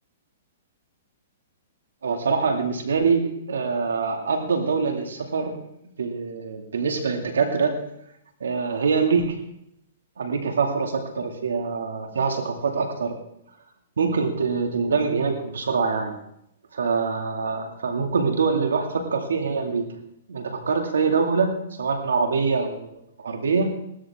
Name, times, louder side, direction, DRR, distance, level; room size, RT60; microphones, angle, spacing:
voice 1, 2.0-5.6 6.0-7.8 8.4-9.4 10.2-13.2 14.0-16.2 16.7-19.9 20.3-23.7, right 5 dB, 90° right, 4 dB, 2.3 m, -24 dB
18.0 x 12.5 x 3.7 m, 0.76 s
hypercardioid pair, 145°, 0 cm